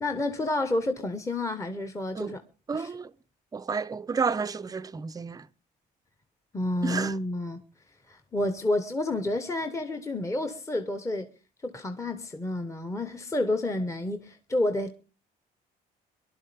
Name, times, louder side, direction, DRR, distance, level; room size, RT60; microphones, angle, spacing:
voice 1, 0.0-2.4 2.7-2.9 6.5-7.6 8.1-11.3 11.6-14.9, left 1 dB, 15° left, 1.2 m, -29 dB
voice 2, 2.7-3.1 3.5-5.5 6.8-7.2, right 5 dB, 20° right, 0.6 m, -31 dB
23.0 x 11.5 x 3.4 m
cardioid pair, 110°, 17 cm